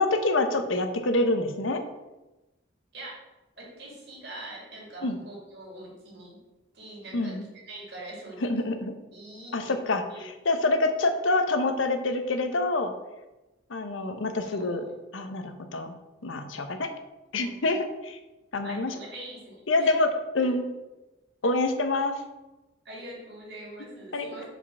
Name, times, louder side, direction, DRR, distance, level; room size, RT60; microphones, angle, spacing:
voice 1, 0.0-1.8 5.0-5.2 7.1-7.4 8.4-8.9 9.5-12.9 13.7-14.8 15.1-15.9 16.2-16.9 17.3-18.2 18.5-18.9 19.7-20.1 20.3-20.6 21.4-22.1 24.1-24.4, left 2 dB, 85° left, 7 dB, 0.8 m, -26 dB
voice 2, 3.6-6.4 6.7-8.5 9.1-9.8 10.1-10.3 14.4-15.0 17.3-17.8 18.6-19.9 20.4-20.5 22.8-24.5, right 1 dB, 55° right, -3 dB, 2.5 m, -43 dB
5.2 x 4.9 x 6.0 m, 1.0 s
head